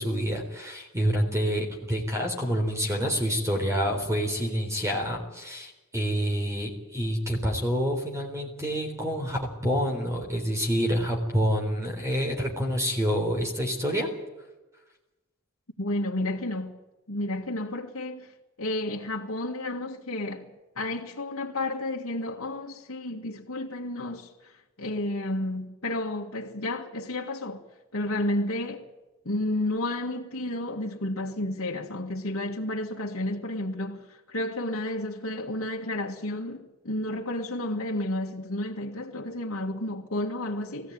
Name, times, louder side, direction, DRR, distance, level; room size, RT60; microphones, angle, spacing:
voice 1, 0.0-14.1, equal, 15° right, 3.8 m, -27 dB
voice 2, 15.8-16.8 17.1-18.3 18.6-27.6 27.9-28.9 29.3-40.9, left 1 dB, 80° left, 2.0 m, -31 dB
21.5 x 16.0 x 9.5 m
head